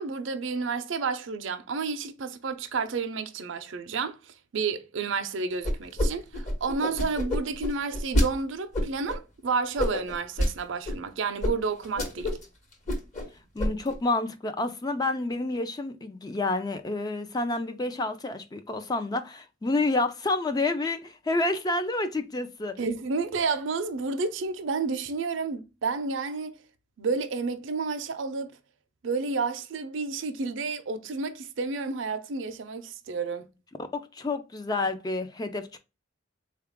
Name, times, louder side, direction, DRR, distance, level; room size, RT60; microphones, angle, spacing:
voice 1, 0.0-12.4 22.8-26.6 27.0-28.5 29.0-33.4, right 4 dB, 65° right, 0.5 m, -31 dB
sound 1, 5.6-6.1 6.3-8.3 8.7-9.2 9.8-10.5 10.8-11.0 11.4-11.5 11.8-12.4 12.7-13.3 13.6-13.9, equal, 35° left, 1.0 m, -27 dB
voice 2, 13.5-22.9 33.9-35.8, left 2 dB, 20° left, 0.4 m, -29 dB
3.7 x 2.3 x 3.4 m
head